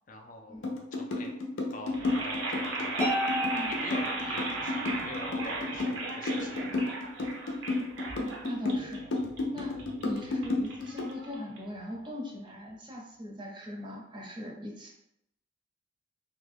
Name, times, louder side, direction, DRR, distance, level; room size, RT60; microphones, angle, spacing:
voice 1, 0.1-1.3 1.7-3.0 3.7-7.0, left 2 dB, 45° left, 2 dB, 0.3 m, -45 dB
sound 1, 0.6-11.1, left 2 dB, 90° left, 0.6 m, -31 dB
sound 2, 1.9-12.0, right 3 dB, 90° right, 0.6 m, -37 dB
Harp, 3.0-4.9, equal, 10° left, 0.7 m, -34 dB
voice 2, 8.2-9.0 9.5-9.7 10.0-14.9, left 1 dB, 25° right, -1 dB, 0.5 m, -40 dB
2.7 x 2.2 x 3.4 m, 0.80 s
head